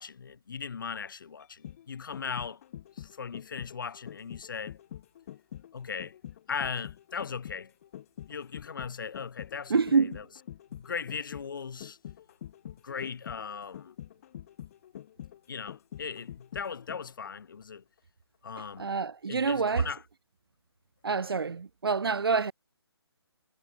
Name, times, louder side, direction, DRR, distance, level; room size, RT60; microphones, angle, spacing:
voice 1, 0.0-2.6 2.9-4.8 5.7-6.2 6.5-7.7 8.3-10.2 10.7-12.0 12.8-14.0 15.5-17.8 18.4-18.9 19.3-20.0, left 6 dB, 50° left, 2.1 m, -38 dB
sound 1, 1.4-17.3 17.6-17.7, left 11 dB, 35° left, 3.4 m, -46 dB
voice 2, 9.7-10.2 18.6-19.9 21.0-22.5, right 5 dB, 60° right, 0.7 m, -27 dB
figure-of-eight pair, 140°, 14 cm